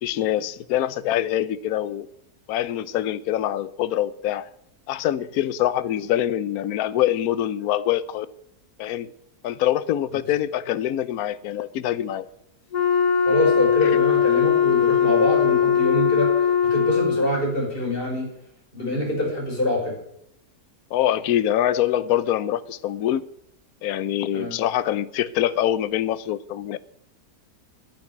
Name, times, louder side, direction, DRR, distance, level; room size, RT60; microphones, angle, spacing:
voice 1, 0.0-2.1 2.5-4.5 4.9-8.3 8.8-9.1 9.4-12.2 13.8-13.9 20.9-23.3 23.8-26.8, left 12 dB, 70° left, 1.1 m, -24 dB
Wind instrument woodwind instrument, 12.7-17.4, left 8 dB, 90° left, 2.0 m, -20 dB
voice 2, 13.3-18.3 18.7-19.9 24.3-24.5, left 1 dB, 35° left, 5.6 m, -25 dB
10.0 x 9.4 x 9.3 m
omnidirectional pair, 1.7 m